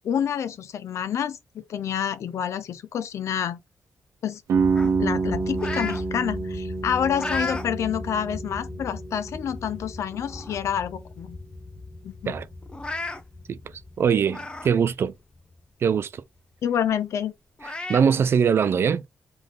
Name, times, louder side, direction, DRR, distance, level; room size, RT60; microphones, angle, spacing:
voice 1, 0.0-3.6 4.2-4.4 4.8-11.4 12.0-12.4 16.6-17.3, left 8 dB, 70° left, 0.6 m, -28 dB
sound 1, 4.5-10.3, right 5 dB, 70° right, 0.8 m, -28 dB
sound 2, 4.6-15.8, left 2 dB, 35° left, 1.1 m, -39 dB
sound 3, 4.7-6.0 6.5-7.7 8.2-8.3 9.2-9.3 9.7-9.8 10.1-10.7 11.1-11.2 11.5-11.6 12.6-13.2 14.2-14.7 15.1-15.2 16.8-16.9 17.6-18.0, left 2 dB, 20° left, 0.7 m, -33 dB
voice 2, 14.0-15.1 15.8-16.2 17.9-19.0, right 7 dB, 50° right, 0.4 m, -22 dB
3.8 x 3.4 x 3.7 m
cardioid pair, 125°, 5 cm